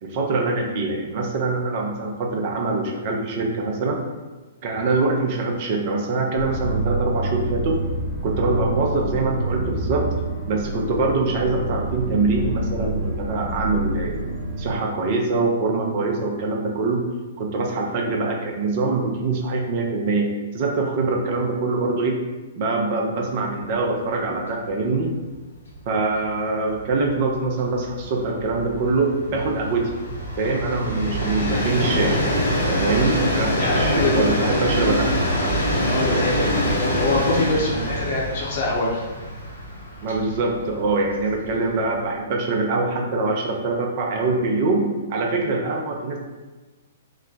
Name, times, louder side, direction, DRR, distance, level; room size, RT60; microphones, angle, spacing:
voice 1, 0.0-4.0 4.6-7.8 8.2-10.1 10.5-14.2 14.6-17.0 17.4-22.2 22.6-25.1 25.9-29.9 30.4-32.2 32.8-35.2 40.0-44.8 45.1-46.2, right 3 dB, 40° right, 1 dB, 0.6 m, -24 dB
sound 1, 6.4-14.7, right 2 dB, 15° left, 0.9 m, -27 dB
Train, 23.7-23.9 24.2-24.3 24.6-42.0, equal, 70° left, 0.8 m, -25 dB
voice 2, 33.6-34.4 35.8-39.0, left 2 dB, 50° left, -3 dB, 1.0 m, -25 dB
3.2 x 2.2 x 3.8 m, 1.3 s
figure-of-eight pair, 115°, 0 cm